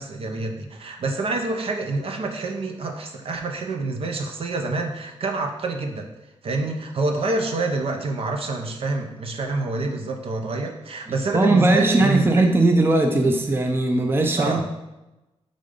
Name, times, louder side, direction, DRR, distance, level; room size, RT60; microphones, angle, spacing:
voice 1, 0.0-6.1 6.4-12.3 14.4-14.6, right 3 dB, 60° right, 4 dB, 0.8 m, -27 dB
voice 2, 11.3-14.7, right 2 dB, 20° right, 4 dB, 0.6 m, -19 dB
5.2 x 3.8 x 5.4 m, 1.0 s
cardioid pair, 110°, 11 cm